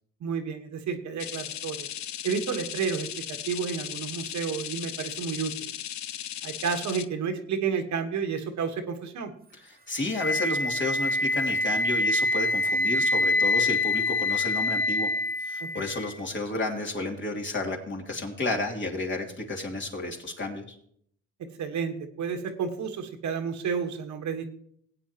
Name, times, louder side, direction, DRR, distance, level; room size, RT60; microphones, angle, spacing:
voice 1, 0.2-1.9 2.2-5.7 6.4-9.3 15.6-15.9 21.4-24.4, right 6 dB, 70° right, 6 dB, 1.5 m, -31 dB
sound 1, 1.2-7.1, left 11 dB, 65° left, 0.7 m, -37 dB
voice 2, 9.6-15.1 15.4-20.8, left 2 dB, 40° left, 1 dB, 2.9 m, -32 dB
Wind instrument woodwind instrument, 10.1-16.1, left 2 dB, 30° right, 0.9 m, -26 dB
18.0 x 8.8 x 3.0 m, 0.65 s
cardioid pair, 90°, 30 cm